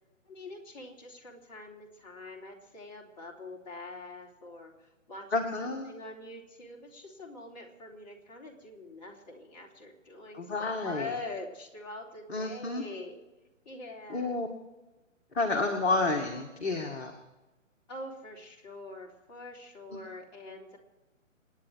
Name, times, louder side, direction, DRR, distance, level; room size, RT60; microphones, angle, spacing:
voice 1, 0.3-4.7 5.1-13.2 13.7-14.4 17.9-20.8, left 2 dB, 35° left, -1 dB, 3.6 m, -44 dB
voice 2, 5.3-5.9 10.3-11.1 12.3-12.8 14.1-14.5 15.3-17.1 19.9-20.0, left 3 dB, 50° left, 2 dB, 2.2 m, -30 dB
28.0 x 10.0 x 4.7 m, 1.1 s
figure-of-eight pair, 140°, 40 cm